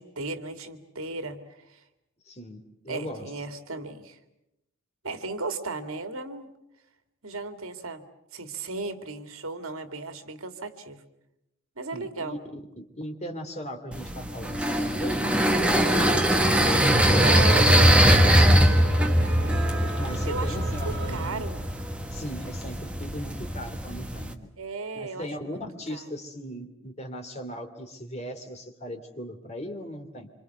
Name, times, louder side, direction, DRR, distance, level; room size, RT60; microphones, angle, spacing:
voice 1, 0.0-1.4 1.7-1.8 2.9-4.2 5.0-6.5 7.2-8.0 8.3-11.0 11.8-12.4 17.1-18.6 20.2-20.7 21.1-21.6 24.6-25.6 25.9-26.1, right 3 dB, 80° right, 9 dB, 2.4 m, -35 dB
voice 2, 2.2-3.3 11.9-16.9 20.0-21.5 22.1-24.5 24.9-30.3, equal, 30° left, 5 dB, 2.8 m, -38 dB
sound 1, 13.9-24.3, equal, 5° right, 1.4 m, -22 dB
sound 2, 15.8-21.3, right 2 dB, 55° right, 2.1 m, -38 dB
26.5 x 26.5 x 8.2 m, 0.87 s
head